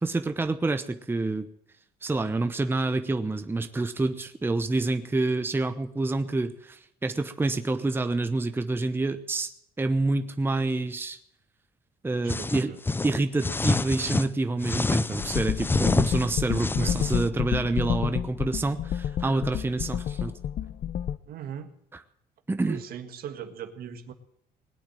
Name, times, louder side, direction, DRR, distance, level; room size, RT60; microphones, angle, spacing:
voice 1, 0.0-1.5 2.0-9.5 9.8-11.2 12.0-12.7 13.0-20.3 22.5-22.8, right 2 dB, 15° right, 8 dB, 0.9 m, -27 dB
voice 2, 12.2-12.8 16.6-16.9 21.3-21.7 22.7-24.1, right 8 dB, 60° right, 8 dB, 1.8 m, -39 dB
sound 1, 12.3-14.3 14.6-17.3, left 3 dB, 10° left, 0.5 m, -27 dB
sound 2, 15.2-21.2, left 10 dB, 50° left, 0.7 m, -29 dB
20.0 x 8.8 x 7.6 m, 0.72 s
cardioid pair, 110°, 17 cm